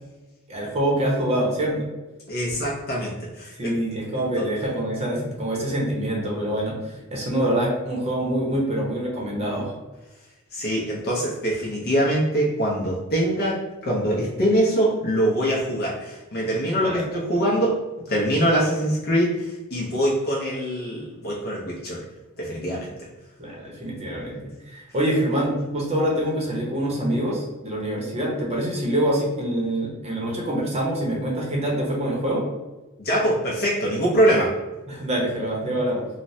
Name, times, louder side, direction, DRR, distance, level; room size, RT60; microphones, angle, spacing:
voice 1, 0.5-1.9 3.6-6.7 7.1-9.7 16.8-17.0 23.4-24.4 24.7-32.4 34.9-36.1, right 1 dB, 30° right, -2 dB, 0.7 m, -25 dB
voice 2, 2.3-3.8 4.1-4.4 10.5-17.8 18.1-22.0 22.4-22.9 33.0-34.6, equal, 50° left, -5 dB, 0.6 m, -23 dB
3.2 x 2.1 x 2.6 m, 1.1 s
head